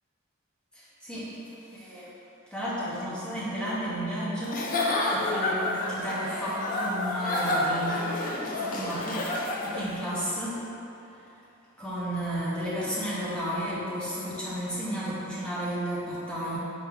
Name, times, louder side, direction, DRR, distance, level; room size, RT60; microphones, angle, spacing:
voice 1, 0.7-1.3 1.7-2.1 2.5-9.3 9.6-10.6 11.8-16.6, equal, 5° left, -9 dB, 0.8 m, -33 dB
Giggle / Chuckle chortle, 4.4-9.9, left 1 dB, 40° left, 0.4 m, -29 dB
4.5 x 2.7 x 3.6 m, 2.9 s
head